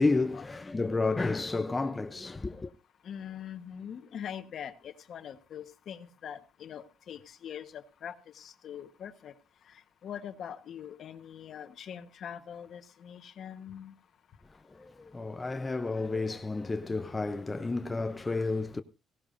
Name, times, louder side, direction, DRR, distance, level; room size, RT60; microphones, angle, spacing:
voice 1, 0.0-2.7 14.7-18.8, left 3 dB, 20° left, 0.6 m, -31 dB
voice 2, 3.0-9.3 9.7-13.9, left 9 dB, 65° left, 1.2 m, -43 dB
18.0 x 16.0 x 2.6 m
cardioid pair, 90°, 0 cm